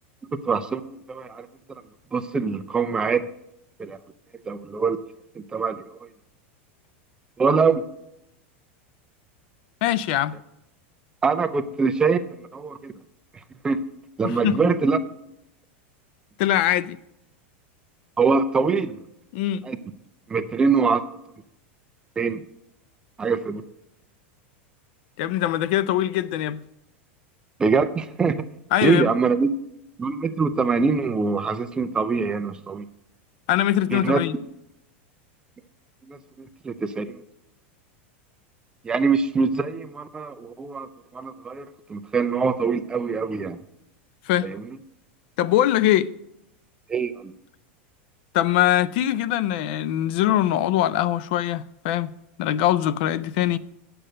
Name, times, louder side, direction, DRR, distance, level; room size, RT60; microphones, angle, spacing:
voice 1, 0.4-1.5 2.1-3.3 3.8-4.0 4.5-5.0 5.5-6.1 7.4-7.8 11.2-12.9 13.6-13.8 14.2-15.0 18.2-19.0 19.6-19.8 20.3-21.0 22.2-22.4 23.2-23.6 27.6-28.4 28.8-29.5 30.0-32.8 33.9-34.2 36.1-37.2 38.8-40.9 41.1-43.6 44.4-44.6 46.9-47.3, right 5 dB, 10° right, 0.4 m, -23 dB
voice 2, 9.8-10.4 14.2-14.6 16.4-17.0 19.3-19.6 25.2-26.6 28.7-29.1 33.5-34.3 44.3-44.5 45.4-46.1 48.3-52.1 52.4-53.6, left 12 dB, 55° left, 0.4 m, -22 dB
8.8 x 6.7 x 6.4 m
supercardioid pair, 160°, 7 cm